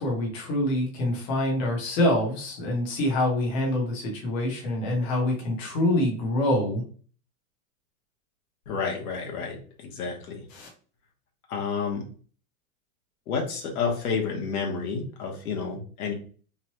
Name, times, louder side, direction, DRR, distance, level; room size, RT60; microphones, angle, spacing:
voice 1, 0.0-6.8 10.5-10.7, left 1 dB, 30° left, -1 dB, 0.9 m, -26 dB
voice 2, 8.7-10.4 11.5-12.1 13.3-16.1, left 5 dB, 85° left, 1 dB, 1.2 m, -30 dB
3.1 x 2.1 x 3.0 m, 0.41 s
supercardioid pair, 165°, 43 cm